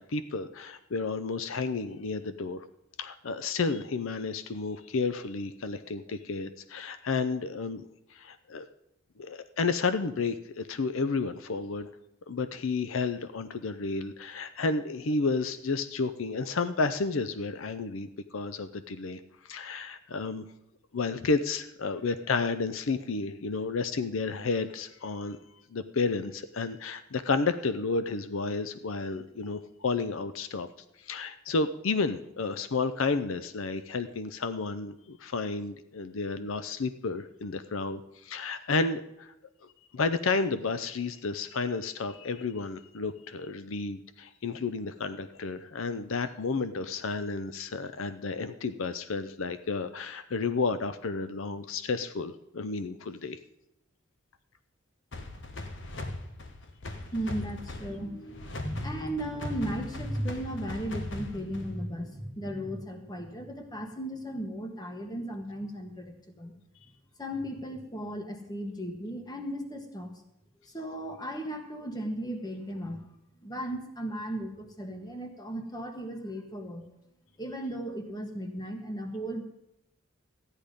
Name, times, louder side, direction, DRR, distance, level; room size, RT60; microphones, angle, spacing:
voice 1, 0.0-2.6 3.0-8.7 9.2-11.9 12.3-20.5 20.9-25.4 25.7-30.7 31.0-39.3 39.6-53.4, left 4 dB, 75° left, 12 dB, 0.6 m, -31 dB
sound 1, 55.1-61.9, left 2 dB, 60° left, 1.2 m, -40 dB
voice 2, 57.1-66.5 67.2-70.1 70.6-73.1 73.4-76.9 77.4-79.4, equal, 20° left, 5 dB, 1.5 m, -36 dB
13.5 x 10.0 x 5.2 m, 0.83 s
head